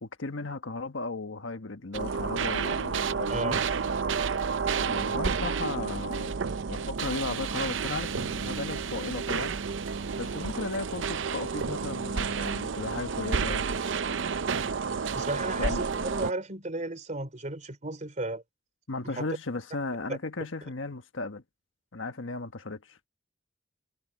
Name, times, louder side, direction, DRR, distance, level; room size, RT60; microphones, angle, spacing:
voice 1, 0.0-3.6 4.7-9.6 10.2-13.6 15.6-15.8 18.9-21.4 21.9-23.0, left 3 dB, 75° left, 1.4 m, -35 dB
sound 1, 1.9-16.3, right 5 dB, 70° right, 0.6 m, -30 dB
voice 2, 3.3-3.6 15.1-18.4 19.2-19.3 20.1-20.2, right 2 dB, 40° right, 3.4 m, -34 dB
head